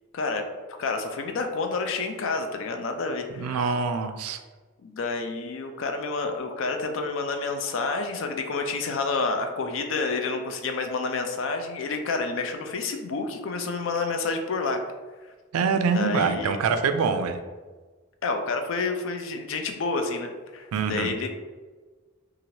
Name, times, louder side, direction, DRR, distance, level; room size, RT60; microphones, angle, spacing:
voice 1, 0.8-3.6 4.8-14.8 15.9-16.5 18.2-21.3, left 3 dB, 60° left, 5 dB, 0.4 m, -29 dB
voice 2, 3.4-4.4 15.5-17.4 20.7-21.1, right 5 dB, 85° right, 8 dB, 0.3 m, -25 dB
2.8 x 2.4 x 3.0 m, 1.4 s
head